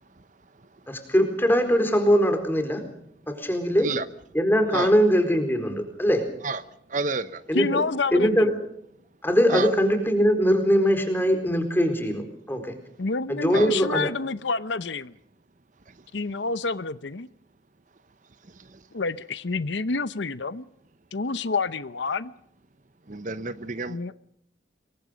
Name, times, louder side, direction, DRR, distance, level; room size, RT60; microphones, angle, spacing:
voice 1, 0.9-2.9 3.3-4.0 4.3-6.3 7.5-7.8 8.1-8.6 9.2-12.8 13.3-14.1, equal, 10° left, 4.2 m, -22 dB
voice 2, 6.9-7.4 9.5-9.7 13.5-13.7 15.9-16.0 18.5-18.8 23.1-24.0, right 3 dB, 40° right, 0.8 m, -30 dB
voice 3, 7.5-8.3 13.0-15.1 16.1-17.3 18.9-20.6 21.1-22.3 23.9-24.1, left 4 dB, 75° left, 0.8 m, -28 dB
27.0 x 22.5 x 5.2 m
head